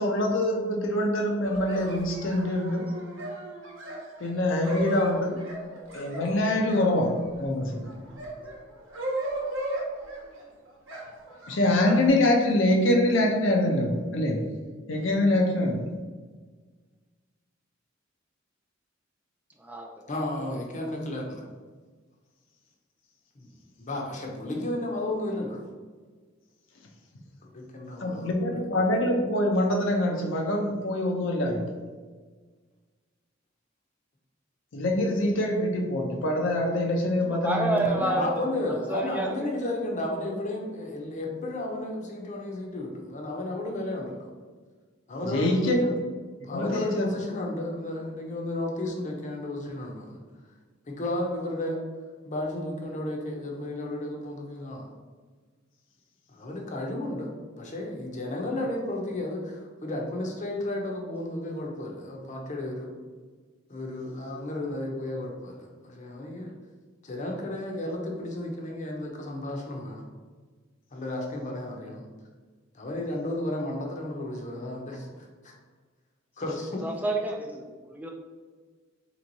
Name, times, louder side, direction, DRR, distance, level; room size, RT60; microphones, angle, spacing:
voice 1, 0.0-2.9 4.2-5.4 5.9-7.9 11.5-14.4 14.9-15.9 28.0-31.6 34.7-38.0 45.2-45.8 46.5-47.1, left 1 dB, 70° left, 2 dB, 0.6 m, -25 dB
sound 1, 1.4-7.4 7.9-10.4 10.9-12.1, right 1 dB, 70° right, 0.9 m, -35 dB
voice 2, 20.1-21.4 23.4-23.5 23.8-25.6 27.4-28.6 37.9-44.3 45.1-45.9 46.4-50.2 50.9-51.8 52.2-54.9 56.3-62.9 63.7-66.5 67.0-70.1 70.9-72.0 72.7-75.5 76.4-76.8, left 1 dB, 40° left, 0 dB, 0.7 m, -33 dB
voice 3, 37.2-38.3 38.6-39.3 76.8-78.1, right 2 dB, 10° right, 1 dB, 0.3 m, -29 dB
3.4 x 3.0 x 4.0 m, 1.4 s
head